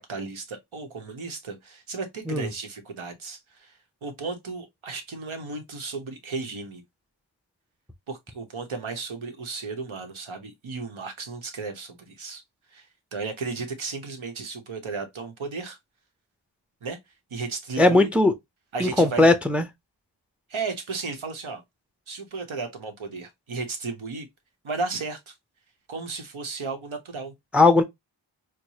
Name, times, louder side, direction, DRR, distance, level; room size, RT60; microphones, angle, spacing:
voice 1, 0.0-3.7 4.0-6.8 8.1-12.4 12.7-12.9 13.1-15.8 16.8-17.0 17.3-18.1 18.7-19.3 20.5-21.6 22.1-24.3 24.6-25.3 25.9-27.3, right 4 dB, 85° right, 1.0 m, -34 dB
voice 2, 17.8-18.3 18.8-19.6 27.5-27.8, left 2 dB, 5° right, 0.4 m, -18 dB
4.6 x 2.2 x 2.7 m
wide cardioid pair, 75°, 47 cm